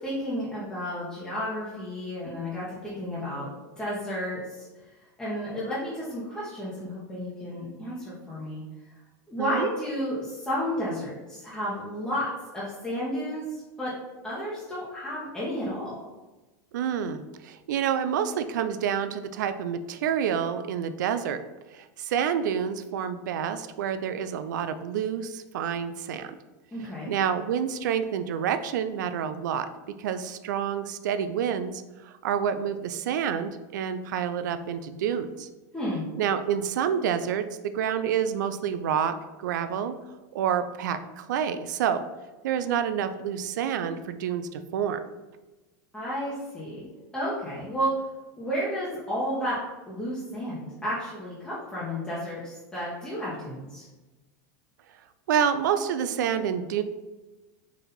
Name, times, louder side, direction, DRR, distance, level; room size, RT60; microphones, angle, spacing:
voice 1, 0.0-3.5 3.8-4.9 5.2-8.6 9.3-12.3 12.5-13.4 13.8-13.9 14.2-16.0 26.7-27.1 35.7-36.0 45.9-46.8 47.1-48.0 48.4-49.6 49.9-53.9, equal, 10° left, -9 dB, 1.0 m, -32 dB
voice 2, 9.4-9.7 16.7-21.4 22.0-26.3 27.1-29.7 30.0-31.8 32.2-35.5 36.2-39.1 39.4-40.0 40.3-42.0 42.4-45.0 55.3-56.8, right 8 dB, 85° right, 11 dB, 0.4 m, -28 dB
4.2 x 2.6 x 4.0 m, 1.1 s
supercardioid pair, 130°, 10 cm